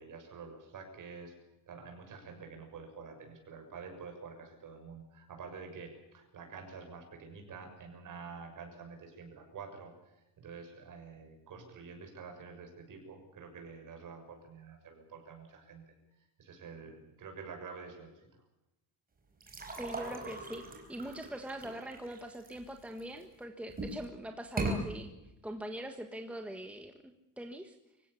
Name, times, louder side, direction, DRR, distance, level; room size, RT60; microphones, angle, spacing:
voice 1, 0.0-1.4 1.7-15.9 16.4-18.4, right 5 dB, 45° right, 4 dB, 6.9 m, -48 dB
sound 1, 19.4-23.2 23.7-24.1 24.4-24.8, right 2 dB, 20° right, 4.8 m, -39 dB
voice 2, 19.7-25.1 25.4-27.8, right 1 dB, 5° right, 5 dB, 1.4 m, -43 dB
25.5 x 16.0 x 8.5 m, 0.93 s
cardioid pair, 170°, 42 cm